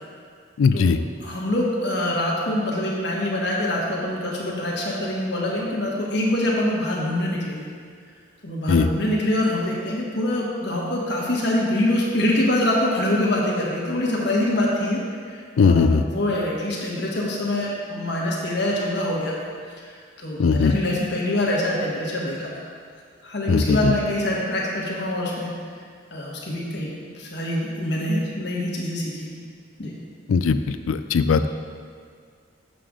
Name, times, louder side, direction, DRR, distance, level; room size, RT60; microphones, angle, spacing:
voice 1, 0.6-1.0 8.7-8.9 15.6-16.0 20.4-20.7 23.5-23.9 30.3-30.6 30.9-31.5, left 5 dB, 90° left, 11 dB, 0.4 m, -18 dB
voice 2, 1.2-7.7 8.4-15.0 15.3-19.3 19.9-22.6 23.2-25.5 26.1-29.4 29.8-29.9, left 1 dB, 55° left, -3 dB, 1.3 m, -25 dB
7.5 x 6.7 x 3.7 m, 2.1 s
head